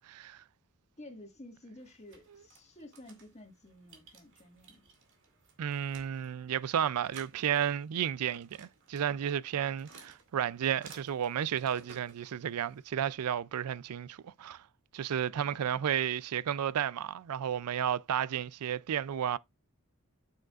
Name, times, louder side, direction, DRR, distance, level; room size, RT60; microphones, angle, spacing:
voice 1, 0.1-0.4 5.6-14.6 14.9-19.4, right 9 dB, 85° right, 0.4 m, -32 dB
voice 2, 1.0-4.9, left 1 dB, 30° left, 1.7 m, -52 dB
sound 1, 1.8-12.9, right 5 dB, 55° right, 2.2 m, -57 dB
9.0 x 6.4 x 2.4 m
head